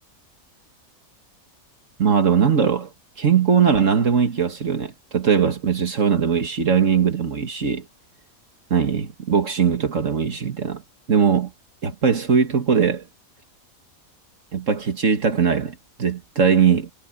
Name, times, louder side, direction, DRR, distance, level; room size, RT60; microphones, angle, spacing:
voice 1, 2.0-2.9 3.2-7.9 8.7-10.8 11.1-11.5 11.8-13.1 14.5-16.9, right 6 dB, 65° right, 2.1 m, -20 dB
omnidirectional pair, 1.5 m